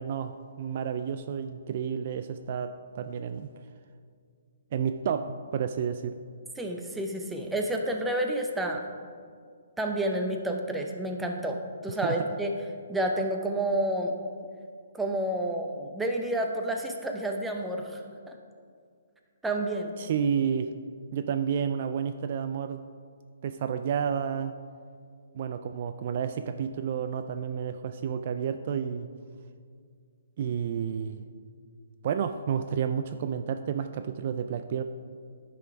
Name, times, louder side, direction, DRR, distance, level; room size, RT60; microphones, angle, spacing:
voice 1, 0.0-3.5 4.7-6.1 12.0-12.2 20.0-20.7 21.1-22.8 23.4-24.5 25.3-29.1 30.4-31.2 32.0-34.8, right 7 dB, 45° right, 9 dB, 0.3 m, -30 dB
voice 2, 6.6-8.8 9.8-12.5 12.9-14.1 14.9-18.4 19.4-19.9, right 1 dB, 5° right, 2 dB, 0.7 m, -30 dB
10.5 x 6.1 x 4.7 m, 2.2 s
hypercardioid pair, 155°, 0 cm